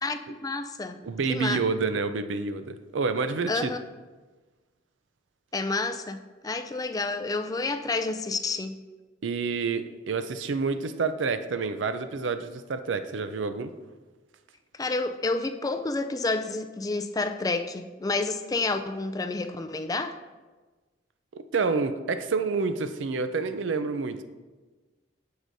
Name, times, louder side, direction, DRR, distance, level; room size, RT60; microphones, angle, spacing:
voice 1, 0.0-1.0 1.3-1.6 3.5-3.8 5.5-6.2 6.4-8.8 14.8-20.1, left 3 dB, 20° left, 8 dB, 0.4 m, -29 dB
voice 2, 1.0-3.7 9.2-13.7 21.3-24.2, right 4 dB, 90° right, 10 dB, 0.5 m, -28 dB
13.5 x 4.9 x 2.6 m, 1.3 s
head